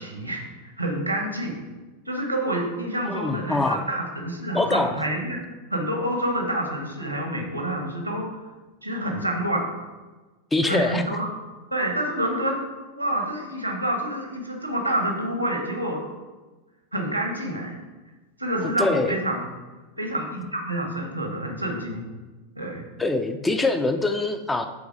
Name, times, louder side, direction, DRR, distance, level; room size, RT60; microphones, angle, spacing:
voice 1, 0.0-1.6 2.1-5.4 5.7-8.3 8.8-9.7 10.7-11.3 11.7-12.6 12.9-16.0 16.9-17.7 18.4-19.5 20.0-22.1 22.5-22.8, right 1 dB, 90° right, 1 dB, 1.4 m, -28 dB
voice 2, 3.0-3.9 4.5-4.9 10.5-11.0 18.8-19.1 23.0-24.7, left 2 dB, 10° left, 7 dB, 0.5 m, -24 dB
7.1 x 3.9 x 4.8 m, 1.2 s
figure-of-eight pair, 90°, 0 cm